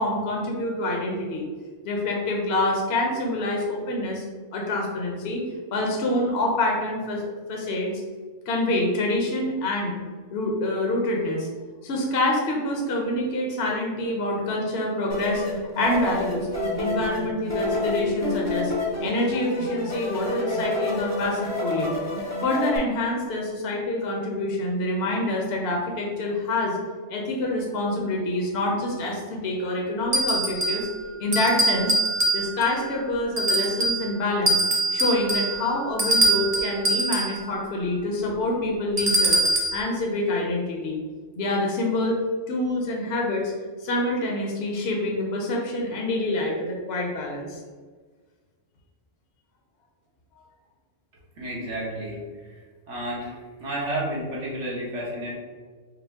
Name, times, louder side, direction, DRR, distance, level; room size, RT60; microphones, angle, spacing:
voice 1, 0.0-1.5 1.8-4.2 4.5-5.4 5.7-8.0 8.5-9.9 10.3-11.5 11.8-16.5 16.8-18.7 19.0-22.0 22.4-26.8 27.1-30.9 31.2-31.9 32.3-34.6 34.9-39.4 39.7-41.0 41.4-42.2 42.5-43.5 43.8-47.6, left 1 dB, 60° left, -1 dB, 0.8 m, -26 dB
sound 1, 15.1-22.8, left 2 dB, 20° left, 0.5 m, -29 dB
sound 2, 30.1-30.9 31.3-32.7 33.4-34.1 34.5-37.4 39.0-39.8, right 2 dB, 50° right, 0.4 m, -23 dB
voice 2, 51.4-52.6 52.9-55.4, right 1 dB, 70° right, -5 dB, 1.4 m, -31 dB
4.9 x 2.0 x 3.4 m, 1.5 s
omnidirectional pair, 1.3 m